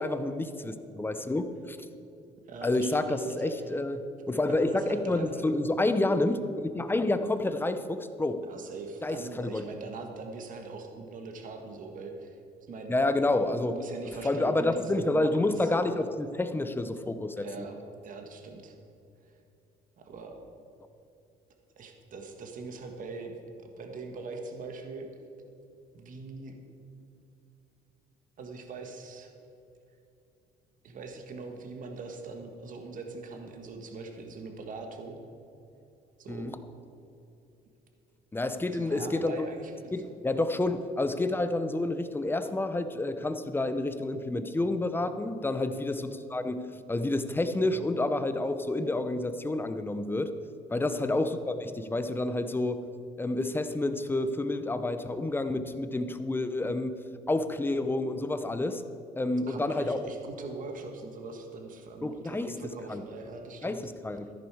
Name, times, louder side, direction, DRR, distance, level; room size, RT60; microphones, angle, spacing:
voice 1, 0.0-1.8 2.6-4.0 4.3-8.4 9.0-9.6 12.9-13.7 14.2-17.5 36.3-36.6 38.3-39.3 39.9-50.3 50.7-52.8 53.2-57.0 57.3-58.8 59.2-60.0 62.0-62.5 62.9-63.0 63.6-64.3, left 2 dB, 10° left, 9 dB, 0.7 m, -29 dB
voice 2, 2.5-3.7 4.2-5.4 8.5-12.4 12.7-13.0 13.7-15.7 17.4-17.8 18.0-18.8 20.0-20.4 21.8-23.3 23.6-25.1 25.9-26.6 28.4-29.3 30.8-35.2 36.2-36.5 38.7-39.9 45.6-45.9 50.8-51.1 59.5-63.8, right 3 dB, 50° right, 4 dB, 1.6 m, -41 dB
13.5 x 10.5 x 4.8 m, 2.7 s
cardioid pair, 110°, 17 cm